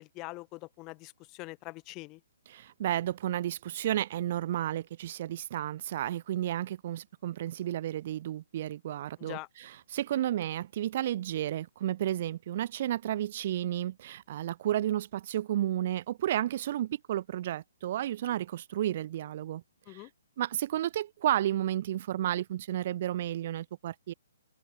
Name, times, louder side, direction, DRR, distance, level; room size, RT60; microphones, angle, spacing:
voice 1, 0.0-2.2 9.2-9.5 19.9-20.1, left 23 dB, 25° left, 3.1 m, -43 dB
voice 2, 2.5-19.6 19.9-20.1 20.4-24.1, right 12 dB, 40° right, 0.9 m, -32 dB
figure-of-eight pair, 130°, 0 cm